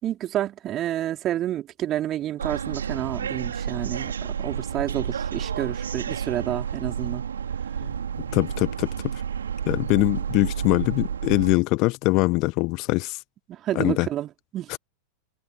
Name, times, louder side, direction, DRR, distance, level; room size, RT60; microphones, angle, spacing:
voice 1, 0.0-7.2 13.5-14.8, right 12 dB, 30° right, 4.3 m, -29 dB
sound 1, 2.4-11.6, right 7 dB, 70° right, 3.1 m, -30 dB
voice 2, 8.3-8.9 9.7-13.2 13.7-14.1 14.7-14.8, left 25 dB, 40° left, 1.3 m, -22 dB
figure-of-eight pair, 90°, 0 cm